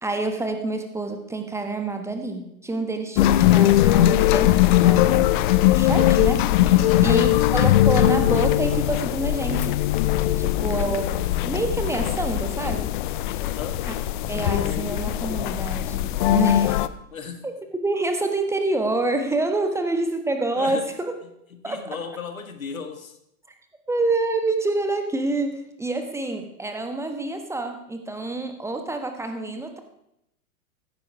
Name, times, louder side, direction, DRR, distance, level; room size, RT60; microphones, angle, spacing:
voice 1, 0.0-5.3 5.7-6.8 7.0-9.8 10.4-12.9 13.8-13.9 14.3-16.8 17.4-17.5 17.8-21.1 21.6-21.8 23.9-29.8, right 2 dB, 5° right, 6 dB, 1.4 m, -27 dB
sound 1, 3.2-16.9, left 14 dB, 35° left, 0.7 m, -20 dB
voice 2, 6.7-7.1 13.4-13.8 17.1-17.4 20.6-20.9 21.6-23.2, left 6 dB, 70° left, 8 dB, 1.9 m, -35 dB
15.5 x 14.5 x 4.8 m, 0.79 s
figure-of-eight pair, 100°, 43 cm